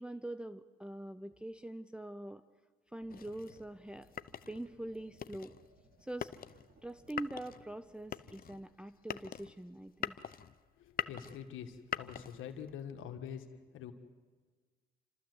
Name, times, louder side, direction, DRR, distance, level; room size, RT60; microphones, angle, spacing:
voice 1, 0.0-2.4 2.9-4.1 4.5-5.5 6.0-6.3 6.8-10.2, right 1 dB, 5° right, 9 dB, 0.6 m, -44 dB
sound 1, 3.0-8.6, right 2 dB, 55° right, 3.4 m, -65 dB
sound 2, 3.1-12.8, left 9 dB, 45° left, 0.7 m, -44 dB
voice 2, 10.8-13.9, left 8 dB, 85° left, 6 dB, 1.6 m, -45 dB
29.0 x 13.5 x 8.0 m, 1.4 s
cardioid pair, 90°, 20 cm